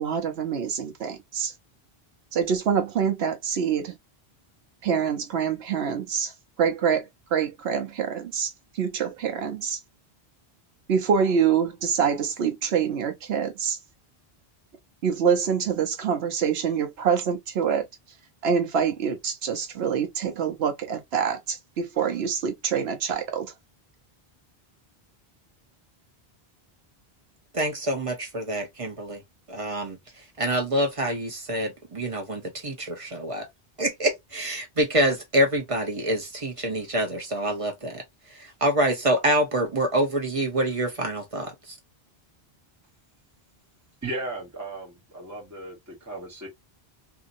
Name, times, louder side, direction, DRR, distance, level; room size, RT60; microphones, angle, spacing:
voice 1, 0.0-1.5 2.3-3.9 4.8-6.3 6.6-7.0 7.3-8.5 8.8-9.8 10.9-13.8 15.0-17.8 18.4-23.5, right 7 dB, 80° right, 1.0 m, -25 dB
voice 2, 27.5-29.2 29.5-30.0 30.4-33.5 33.8-38.0 38.6-41.5, right 1 dB, 35° right, 0.8 m, -26 dB
voice 3, 44.0-46.5, right 2 dB, 15° right, 1.2 m, -36 dB
2.7 x 2.7 x 2.5 m
omnidirectional pair, 1.0 m